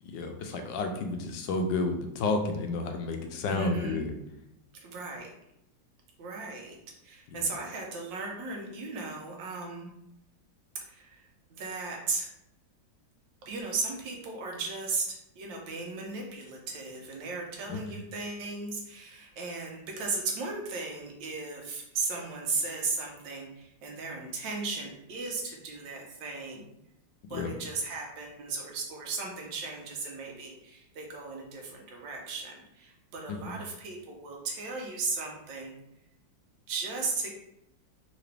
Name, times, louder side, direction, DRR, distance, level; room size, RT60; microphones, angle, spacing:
voice 1, 0.0-4.1 7.3-7.5 17.7-18.0 27.3-27.5 33.3-33.6, left 3 dB, 80° left, 5 dB, 1.3 m, -31 dB
voice 2, 3.5-4.0 4.8-5.3 6.2-6.8 7.0-9.9 10.9-11.3 11.6-12.3 13.5-26.7 27.3-35.8 36.7-37.3, right 3 dB, 85° right, 0 dB, 1.5 m, -36 dB
3.8 x 2.9 x 3.3 m, 0.82 s
omnidirectional pair, 2.0 m